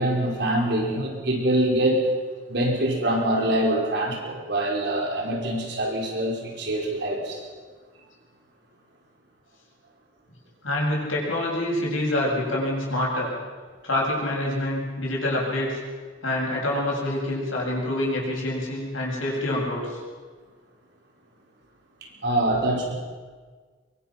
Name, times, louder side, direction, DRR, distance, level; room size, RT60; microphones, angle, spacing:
voice 1, 0.0-2.0 2.5-7.4 22.2-22.9, right 1 dB, 55° right, -1 dB, 4.8 m, -24 dB
voice 2, 10.6-13.3 13.8-15.8 16.2-20.0, left 1 dB, 85° left, -3 dB, 7.4 m, -26 dB
23.0 x 23.0 x 6.0 m, 1.5 s
head